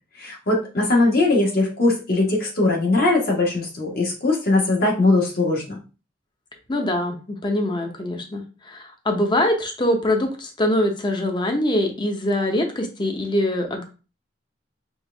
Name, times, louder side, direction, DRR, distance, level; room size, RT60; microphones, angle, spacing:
voice 1, 0.2-5.8, left 2 dB, 55° left, -2 dB, 1.5 m, -20 dB
voice 2, 6.7-13.8, left 1 dB, 25° left, 3 dB, 0.8 m, -23 dB
4.5 x 2.4 x 3.4 m, 0.33 s
head